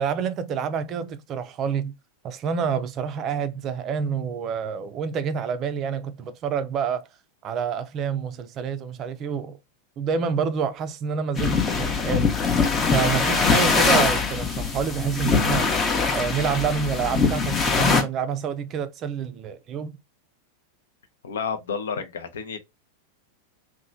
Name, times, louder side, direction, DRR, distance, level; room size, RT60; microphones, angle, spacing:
voice 1, 0.0-1.9 2.2-7.1 7.4-9.6 10.0-12.3 12.9-15.7 16.1-19.9, right 7 dB, 35° right, 0.4 m, -27 dB
sound 1, 11.4-18.0, left 5 dB, 25° left, 0.6 m, -22 dB
voice 2, 21.2-22.6, left 6 dB, 65° left, 0.5 m, -30 dB
2.9 x 2.1 x 2.5 m
figure-of-eight pair, 90°, 0 cm